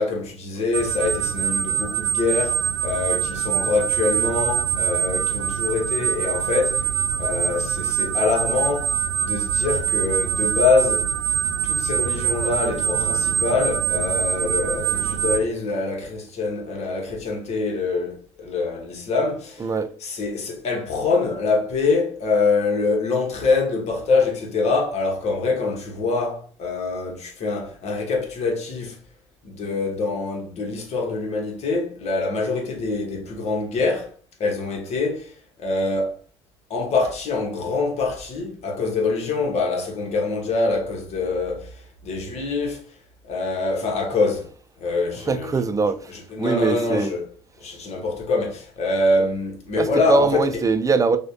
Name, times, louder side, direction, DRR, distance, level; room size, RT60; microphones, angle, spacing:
voice 1, 0.0-6.9 7.2-11.1 11.6-19.7 20.0-29.0 29.4-34.1 34.4-35.3 35.6-36.2 36.7-42.9 43.2-44.5 44.8-45.6 46.1-47.2 47.6-50.6, left 3 dB, 50° left, 1.3 m, -24 dB
sound 1, 0.7-15.4, right 8 dB, 80° right, 0.5 m, -24 dB
voice 2, 19.6-19.9 45.3-46.1 46.4-47.1 49.7-51.2, right 4 dB, 25° right, 0.6 m, -21 dB
6.1 x 2.5 x 2.8 m
hypercardioid pair, 60°, 14 cm